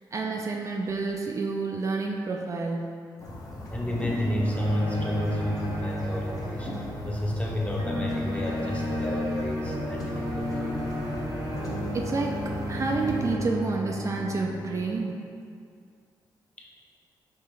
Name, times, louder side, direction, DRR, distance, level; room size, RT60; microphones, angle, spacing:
voice 1, 0.1-2.9 11.9-15.2, right 3 dB, 40° right, 1 dB, 0.4 m, -29 dB
sound 1, 3.2-13.3, left 1 dB, 45° left, 0.9 m, -39 dB
voice 2, 3.7-6.7 7.0-10.7 16.6-16.7, left 1 dB, 15° left, -2 dB, 0.8 m, -31 dB
sound 2, 4.4-14.9, equal, 80° right, 1.3 m, -32 dB
5.4 x 2.8 x 3.3 m, 2.3 s
cardioid pair, 75°, 8 cm